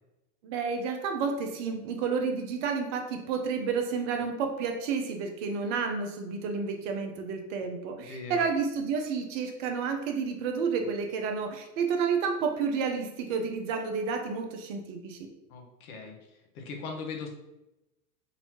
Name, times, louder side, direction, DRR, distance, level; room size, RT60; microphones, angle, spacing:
voice 1, 0.4-15.2, right 5 dB, 50° right, 4 dB, 0.7 m, -30 dB
voice 2, 8.1-8.4 15.5-17.3, left 4 dB, 60° left, 2 dB, 1.1 m, -40 dB
4.1 x 2.6 x 2.9 m, 0.94 s
hypercardioid pair, 110°, 49 cm